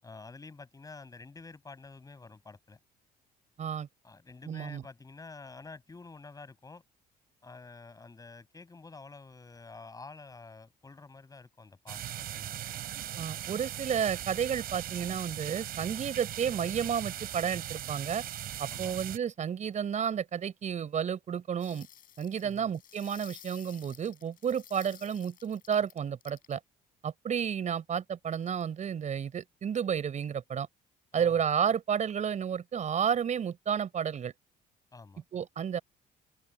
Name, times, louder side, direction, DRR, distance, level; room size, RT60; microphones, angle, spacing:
voice 1, 0.0-2.8 4.0-6.8 7.4-12.6 18.7-19.0 22.4-22.7 31.1-31.4 34.9-35.2, left 3 dB, 20° left, 7.9 m, -49 dB
voice 2, 4.5-4.8 13.2-18.2 18.6-21.9 22.2-26.6 27.0-30.7 31.1-34.3 35.3-35.8, right 8 dB, 45° right, 5.1 m, -31 dB
sound 1, 11.9-19.2, right 11 dB, 65° right, 4.6 m, -39 dB
sound 2, 21.6-26.6 28.3-28.8, left 10 dB, 55° left, 5.3 m, -53 dB
cardioid pair, 110°, 17 cm